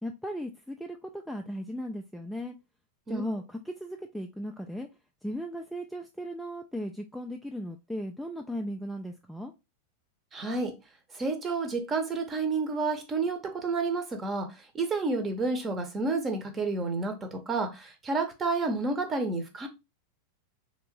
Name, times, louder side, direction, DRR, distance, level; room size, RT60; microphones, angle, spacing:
voice 1, 0.0-2.6 3.1-4.9 5.2-9.5, equal, ahead, 0.4 m, -36 dB
voice 2, 10.3-10.7 11.1-14.5 14.7-19.7, right 3 dB, 20° right, 0.8 m, -30 dB
3.4 x 2.8 x 3.0 m
figure-of-eight pair, 90°, 0 cm